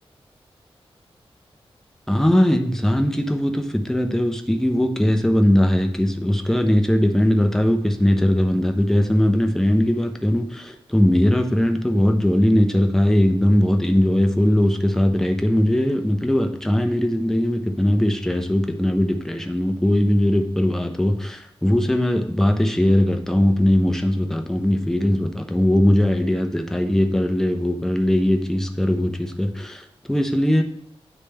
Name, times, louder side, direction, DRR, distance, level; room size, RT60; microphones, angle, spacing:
voice 1, 2.1-30.6, left 1 dB, 5° left, 5 dB, 0.6 m, -20 dB
9.8 x 3.3 x 3.3 m, 0.68 s
wide cardioid pair, 125°, 10 cm